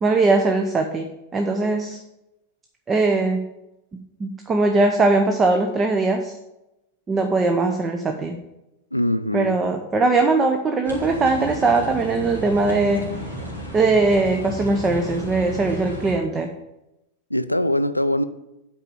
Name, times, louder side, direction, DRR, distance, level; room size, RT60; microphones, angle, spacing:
voice 1, 0.0-2.0 2.9-3.4 4.2-6.3 7.1-8.4 9.3-13.1 13.7-16.5, right 3 dB, 20° right, 0.8 m, -20 dB
voice 2, 8.9-9.6 17.3-18.2, left 1 dB, 90° left, 0.4 m, -22 dB
sound 1, 10.8-16.1, equal, 90° right, 2.6 m, -33 dB
8.5 x 5.0 x 7.1 m
figure-of-eight pair, 90°, 0 cm